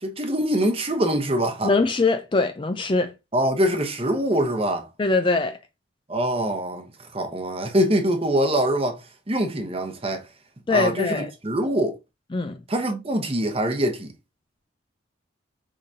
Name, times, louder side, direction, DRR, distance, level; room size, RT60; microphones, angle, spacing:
voice 1, 0.0-1.7 3.3-4.9 6.1-6.8 7.1-9.0 9.3-10.2 10.7-12.0 12.7-14.1, right 1 dB, 30° right, 0.9 m, -24 dB
voice 2, 1.6-3.1 5.0-5.6 10.7-11.3 12.3-12.6, left 3 dB, 25° left, 0.4 m, -22 dB
5.0 x 3.7 x 2.7 m
head